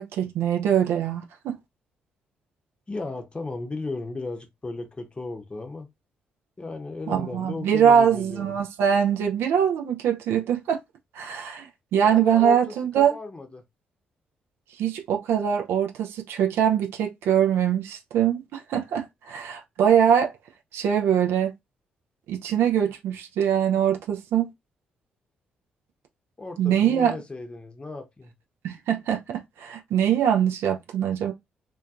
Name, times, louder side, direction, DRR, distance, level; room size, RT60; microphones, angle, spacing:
voice 1, 0.0-1.6 7.1-10.8 11.1-13.1 14.8-20.3 20.7-21.5 22.3-24.5 26.6-27.1 28.6-31.3, right 8 dB, 65° right, 0.4 m, -23 dB
voice 2, 2.9-5.9 6.6-8.6 12.0-13.6 26.4-28.3, left 3 dB, 25° left, 0.7 m, -35 dB
2.7 x 2.3 x 2.3 m
figure-of-eight pair, 40°, 4 cm